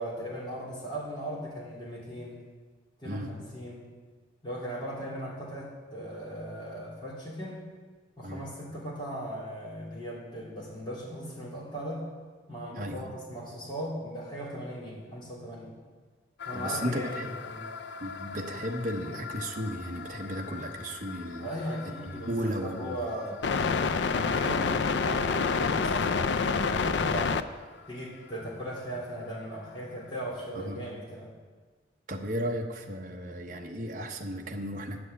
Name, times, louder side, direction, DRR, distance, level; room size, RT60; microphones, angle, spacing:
voice 1, 0.0-2.4 3.0-3.8 4.4-7.6 8.2-12.0 12.5-15.7 16.5-17.7 21.4-23.4 23.8-27.4 27.9-31.3, equal, 25° left, -7 dB, 3.5 m, -38 dB
voice 2, 12.7-13.0 16.5-17.2 18.0-21.5 22.3-23.1 30.6-30.8 32.1-35.0, equal, 45° right, 2 dB, 1.1 m, -34 dB
sound 1, 16.4-27.4, left 5 dB, 70° left, 0.4 m, -31 dB
9.6 x 6.4 x 8.3 m, 1.4 s
head